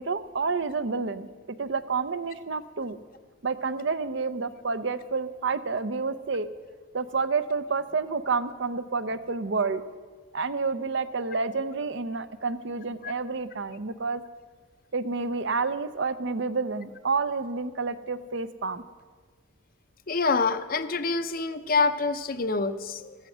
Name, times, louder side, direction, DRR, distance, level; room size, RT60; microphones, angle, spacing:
voice 1, 0.0-3.0 3.4-6.5 6.9-9.8 10.3-14.2 14.9-18.8, right 4 dB, 60° right, 12 dB, 0.7 m, -29 dB
voice 2, 20.1-23.2, left 4 dB, 45° left, 10 dB, 0.6 m, -26 dB
14.5 x 14.0 x 6.2 m, 1.4 s
head